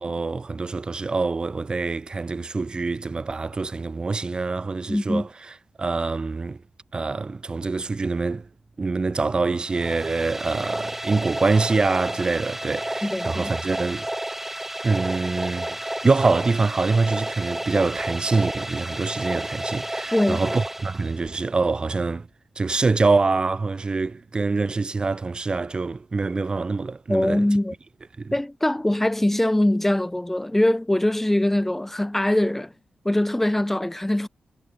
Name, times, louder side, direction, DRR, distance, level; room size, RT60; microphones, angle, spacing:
voice 1, 0.0-5.3 5.8-6.6 6.9-8.5 8.8-14.1 14.8-22.3 22.6-27.4 28.2-28.3, right 3 dB, 35° right, 3.4 m, -25 dB
voice 2, 4.9-5.3 13.0-13.4 20.1-20.6 27.1-27.7 28.3-32.7 33.0-34.3, left 1 dB, 10° left, 3.8 m, -22 dB
sound 1, 9.6-21.5, right 1 dB, 10° right, 3.2 m, -31 dB
wide cardioid pair, 110°, 3 cm